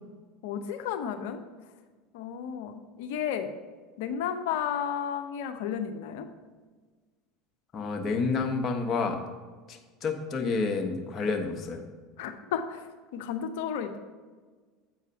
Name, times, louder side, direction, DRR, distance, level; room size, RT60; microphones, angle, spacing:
voice 1, 0.4-1.4 2.1-3.5 4.0-6.3 12.2-12.9 13.1-14.0, left 8 dB, 70° left, 7 dB, 0.8 m, -33 dB
voice 2, 7.7-9.2 9.7-11.8, left 4 dB, 40° left, 3 dB, 1.2 m, -29 dB
7.8 x 4.8 x 5.6 m, 1.4 s
hypercardioid pair, 85°, 0 cm